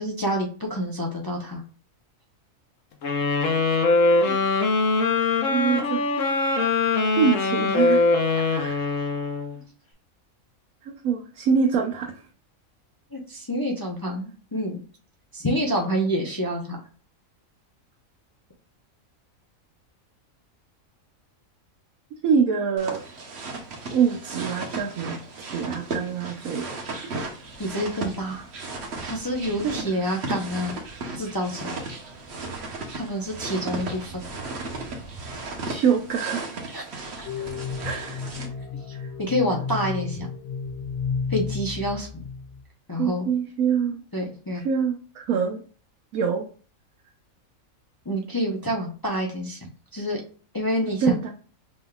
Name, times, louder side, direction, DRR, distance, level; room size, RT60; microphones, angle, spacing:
voice 1, 0.0-1.6 8.3-8.4 13.1-14.8 15.3-16.8 27.6-28.5 29.0-30.8 31.1-31.7 33.0-34.3 36.7-36.8 37.2-37.3 38.9-40.3 41.3-42.2 42.9-43.3 44.1-44.6 48.1-50.2 50.5-51.2, equal, 20° left, 0 dB, 0.6 m, -28 dB
sound 1, 3.0-9.6, left 3 dB, 70° left, 1.2 m, -22 dB
voice 2, 5.5-6.0 7.1-8.0 8.5-8.8 10.8-12.2 22.2-23.0 23.9-27.0 29.6-29.8 35.6-36.4 37.8-38.2 39.0-39.1 43.0-44.0 44.5-45.6 46.1-46.5 51.0-51.3, right 6 dB, 85° right, 2 dB, 1.1 m, -25 dB
sound 2, 22.8-38.5, right 3 dB, 55° right, 1.2 m, -35 dB
sound 3, 37.2-42.6, left 6 dB, 40° left, 2.2 m, -32 dB
5.0 x 3.7 x 2.3 m, 0.40 s
omnidirectional pair, 1.4 m